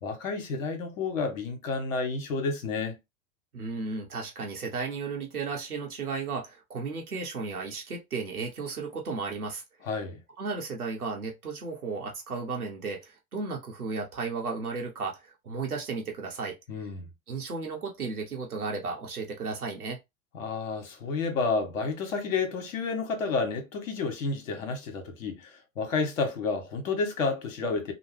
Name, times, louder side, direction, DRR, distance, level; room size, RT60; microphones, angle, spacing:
voice 1, 0.0-3.0 9.8-10.2 16.7-17.1 20.3-27.9, left 4 dB, 60° left, 1.2 m, -30 dB
voice 2, 3.5-9.6 10.4-16.9 17.3-20.0, right 4 dB, 85° right, 0.9 m, -34 dB
2.9 x 2.1 x 3.2 m
figure-of-eight pair, 95°, 44 cm